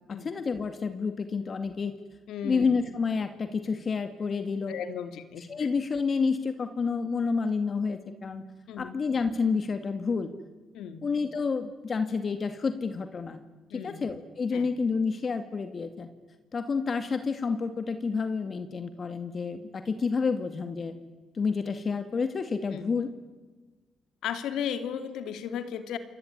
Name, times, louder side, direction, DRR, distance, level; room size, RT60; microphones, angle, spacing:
voice 1, 0.2-1.9 2.4-4.7 5.5-8.4 8.8-10.3 11.0-13.4 13.8-16.1 16.5-20.9 21.3-23.1, left 5 dB, 40° left, 9 dB, 2.2 m, -29 dB
voice 2, 2.3-2.8 4.7-5.7 8.7-9.0 10.7-11.0 13.7-14.0 14.5-14.7 22.7-22.9 24.2-26.0, left 8 dB, 85° left, 10 dB, 2.7 m, -35 dB
28.0 x 21.5 x 9.7 m, 1.3 s
cardioid pair, 90°, 0 cm